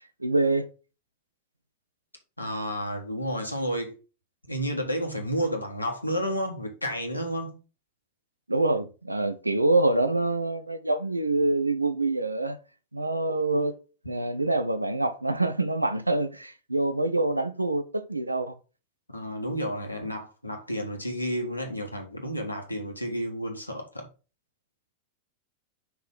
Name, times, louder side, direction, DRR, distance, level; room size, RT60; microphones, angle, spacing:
voice 1, 0.2-0.7 8.5-12.6 12.9-13.8 14.1-18.5, right 2 dB, 85° right, 0.7 m, -26 dB
voice 2, 2.4-4.0 4.5-7.6 19.1-24.1, equal, 85° left, 1.6 m, -31 dB
5.7 x 4.0 x 5.5 m
figure-of-eight pair, 90°, 0 cm